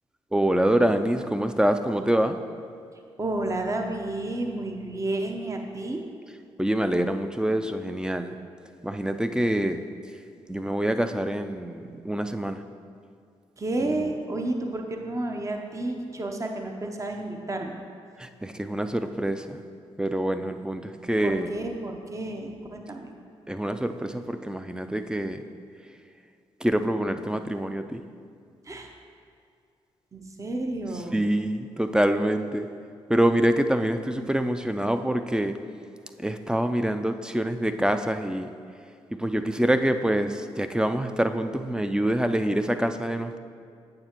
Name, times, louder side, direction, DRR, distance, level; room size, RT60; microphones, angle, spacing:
voice 1, 0.3-2.4 6.6-8.3 8.8-9.8 10.5-12.6 18.2-19.6 20.0-21.5 23.5-25.5 26.6-28.0 31.1-32.7 33.1-35.6 36.2-38.5 39.1-43.4, right 1 dB, 5° right, 8 dB, 0.4 m, -25 dB
voice 2, 3.2-6.0 13.6-17.7 21.2-23.1 28.6-28.9 30.1-31.2, right 2 dB, 30° right, 3 dB, 0.8 m, -31 dB
8.8 x 6.4 x 3.0 m, 2.3 s
supercardioid pair, 50°, 11 cm